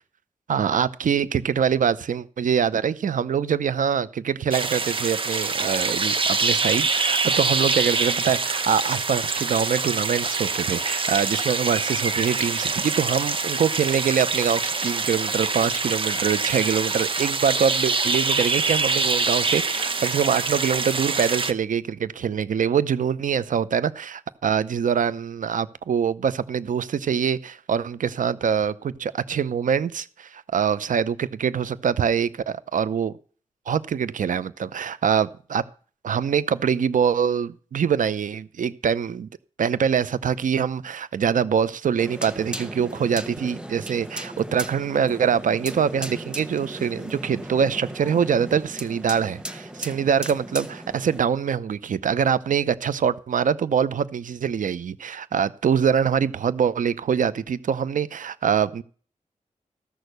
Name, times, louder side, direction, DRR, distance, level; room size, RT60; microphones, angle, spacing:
voice 1, 0.5-33.1 33.7-35.6 36.0-39.3 39.6-58.8, right 7 dB, 75° right, 0.6 m, -24 dB
sound 1, 4.5-21.5, right 4 dB, 40° right, 0.8 m, -25 dB
sound 2, 42.0-51.2, right 1 dB, 5° right, 1.1 m, -36 dB
14.0 x 6.4 x 6.6 m
wide cardioid pair, 105°, 14 cm